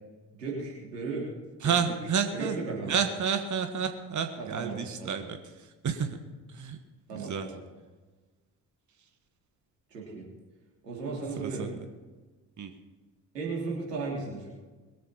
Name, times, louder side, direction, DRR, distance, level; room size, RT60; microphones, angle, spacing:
voice 1, 0.4-1.3 1.6-2.0 2.3-2.9 4.4-5.2 7.1-7.6 9.9-10.2 10.8-11.7 13.3-14.5, right 4 dB, 90° right, -3 dB, 3.3 m, -35 dB
voice 2, 1.6-2.6 2.9-6.2 6.5-6.8 7.1-7.5 11.4-11.7 12.6-12.7, right 6 dB, 40° right, 6 dB, 1.5 m, -30 dB
22.0 x 8.2 x 4.4 m, 1.3 s
hypercardioid pair, 45°, 47 cm